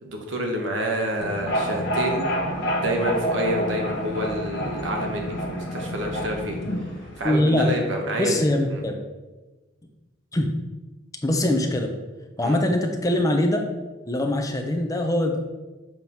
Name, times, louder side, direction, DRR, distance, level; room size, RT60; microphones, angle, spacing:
voice 1, 0.0-2.2 2.8-6.6 7.2-8.4 8.7-8.8 12.4-12.6, equal, 65° right, 2 dB, 1.1 m, -28 dB
sound 1, 1.2-7.3, equal, 55° left, 1.0 m, -28 dB
voice 2, 7.2-7.8 8.2-8.9 10.3-10.5 11.2-11.9 12.4-13.6 14.1-15.4, left 1 dB, 15° left, 4 dB, 0.6 m, -22 dB
7.3 x 3.1 x 5.4 m, 1.2 s
head